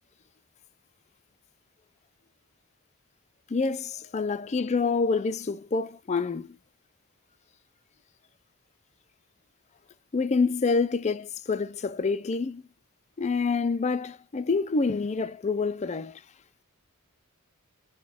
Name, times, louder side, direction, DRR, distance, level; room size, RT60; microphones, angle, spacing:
voice 1, 3.5-6.6 10.1-12.6 13.2-16.2, left 4 dB, 30° left, 0.4 m, -27 dB
4.6 x 2.2 x 4.0 m
head